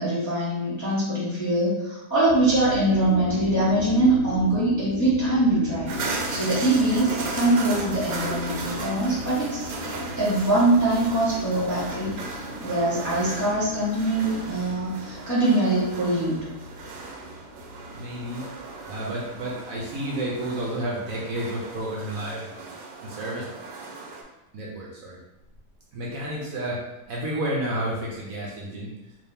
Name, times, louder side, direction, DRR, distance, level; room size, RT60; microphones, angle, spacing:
voice 1, 0.0-5.9 6.1-9.7 10.2-16.4, right 2 dB, 15° left, -9 dB, 0.7 m, -23 dB
sound 1, 2.3-21.2, left 2 dB, 80° left, 0.6 m, -36 dB
sound 2, 5.9-24.2, right 3 dB, 85° right, 1.2 m, -36 dB
voice 2, 17.9-18.5 18.9-22.6 23.0-23.5 24.5-25.2 25.9-26.8 27.1-28.9, right 1 dB, 65° right, -3 dB, 1.0 m, -31 dB
3.4 x 3.1 x 2.7 m, 0.94 s
omnidirectional pair, 1.8 m